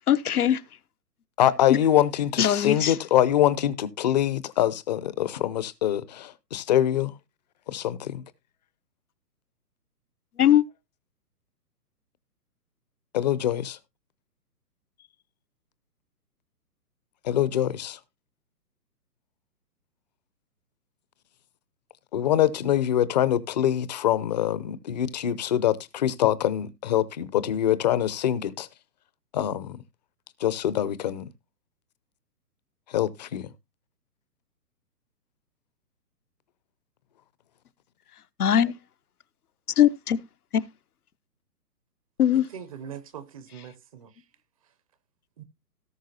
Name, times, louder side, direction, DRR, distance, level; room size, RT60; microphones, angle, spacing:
voice 1, 0.1-0.6 2.4-2.9 10.4-10.6 38.4-38.7 39.8-40.2 42.2-42.5, left 10 dB, 70° left, 0.8 m, -20 dB
voice 2, 1.4-7.1 7.7-8.2 13.1-13.8 17.2-18.0 22.1-28.7 29.3-29.8 30.4-31.3 32.9-33.5, left 11 dB, 30° left, 0.6 m, -24 dB
voice 3, 42.3-44.2 45.4-45.5, right 8 dB, 25° right, 0.6 m, -42 dB
17.5 x 5.9 x 2.7 m
figure-of-eight pair, 130°, 47 cm